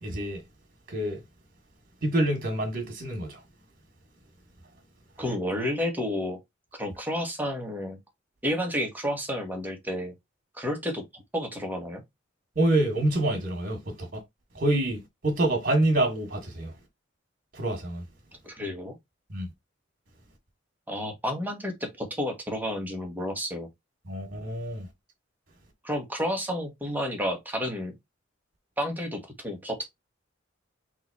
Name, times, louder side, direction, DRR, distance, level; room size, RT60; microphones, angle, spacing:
voice 1, 0.0-0.4 0.9-1.2 2.0-3.4 12.6-14.2 14.6-16.7 17.5-18.0 19.3-19.5 24.1-24.9, right 1 dB, 50° right, 1.6 m, -27 dB
voice 2, 5.2-6.4 6.8-8.0 8.4-10.1 10.6-12.0 18.4-19.0 20.9-23.7 25.8-27.9 28.8-29.8, equal, 10° right, 1.3 m, -31 dB
3.9 x 3.1 x 4.0 m
head